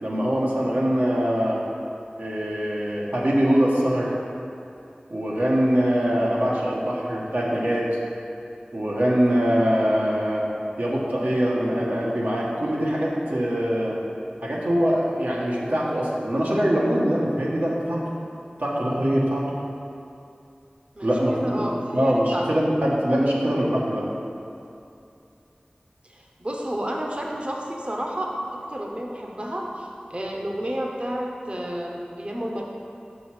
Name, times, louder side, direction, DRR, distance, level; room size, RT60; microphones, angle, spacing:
voice 1, 0.0-1.6 2.2-4.1 5.1-7.8 8.7-10.4 10.8-14.0 14.4-18.1 18.6-19.4 21.0-21.6 21.9-24.0, equal, 80° right, -5 dB, 1.4 m, -23 dB
voice 2, 21.0-22.5 26.0-32.6, equal, 40° right, -1 dB, 0.8 m, -31 dB
5.7 x 5.4 x 6.2 m, 2.6 s
wide cardioid pair, 50°, 3 cm